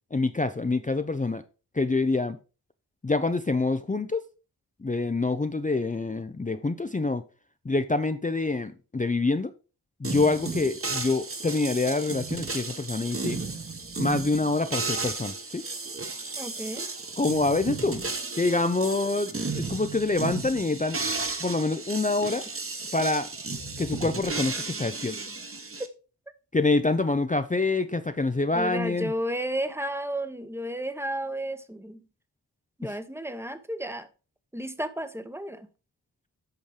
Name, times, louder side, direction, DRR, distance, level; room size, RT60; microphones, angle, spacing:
voice 1, 0.1-1.4 1.8-2.4 3.0-4.2 4.8-7.2 7.6-9.5 10.0-13.4 14.0-15.6 17.2-18.0 18.4-21.0 21.4-22.4 22.9-23.3 23.8-25.2 26.5-29.1 32.8-33.0, left 3 dB, 20° left, 0.6 m, -26 dB
sound 1, 10.0-25.9, right 3 dB, 35° right, 1.3 m, -34 dB
voice 2, 16.4-16.9 18.8-19.0 28.5-32.0 32.8-34.1 34.5-35.7, right 1 dB, 5° right, 1.0 m, -32 dB
8.2 x 5.2 x 4.9 m
wide cardioid pair, 70°, 40 cm